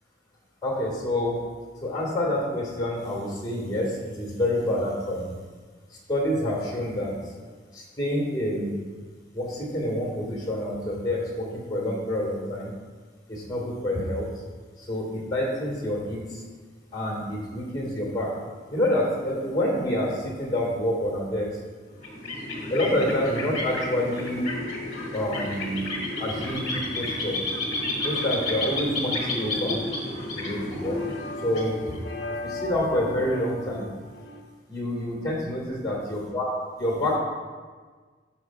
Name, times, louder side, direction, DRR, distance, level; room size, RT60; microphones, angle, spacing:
voice 1, 0.6-1.4 1.8-5.3 6.1-8.8 9.3-12.7 13.3-14.3 14.8-16.4 16.9-18.3 18.7-21.6 22.7-24.4 25.1-25.9 26.2-27.4 28.0-29.8 30.4-31.0 31.4-31.9 32.3-33.9 34.7-36.5 36.8-37.2, left 1 dB, 20° left, -3 dB, 1.7 m, -27 dB
sound 1, 21.9-32.3, left 2 dB, 35° left, 1.4 m, -31 dB
sound 2, 24.4-34.4, left 2 dB, 65° left, 0.7 m, -41 dB
12.5 x 5.5 x 2.3 m, 1.5 s
head